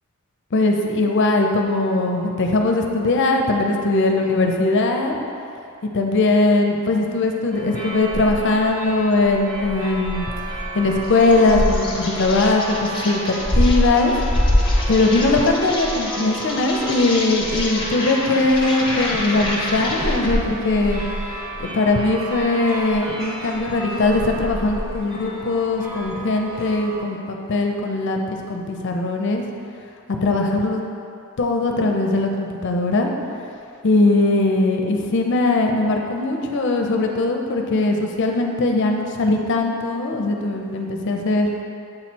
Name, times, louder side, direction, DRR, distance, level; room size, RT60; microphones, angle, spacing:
voice 1, 0.5-5.1 5.9-10.3 10.7-14.1 14.9-21.0 21.6-28.2 28.5-29.4 30.2-30.8 31.4-33.1 33.8-41.5, left 2 dB, 55° left, 2 dB, 0.5 m, -20 dB
sound 1, 7.5-27.0, equal, 45° right, 1.2 m, -27 dB
Insect, 11.0-20.4, left 2 dB, 25° left, 0.7 m, -30 dB
7.6 x 3.1 x 4.4 m, 2.6 s
head